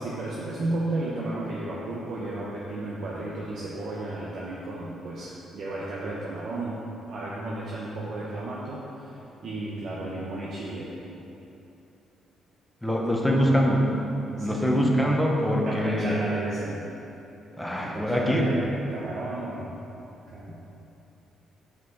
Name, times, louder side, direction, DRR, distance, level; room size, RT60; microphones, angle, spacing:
voice 1, 0.0-6.8 7.1-9.2 9.4-10.9 13.3-13.4 14.4-14.9 15.6-16.8 17.8-19.8 20.3-20.6, right 2 dB, 65° right, -6 dB, 0.9 m, -33 dB
voice 2, 12.8-13.8 14.4-16.1 17.6-18.5, equal, 5° left, -1 dB, 0.9 m, -23 dB
6.1 x 5.3 x 4.0 m, 2.9 s
cardioid pair, 90°, 0 cm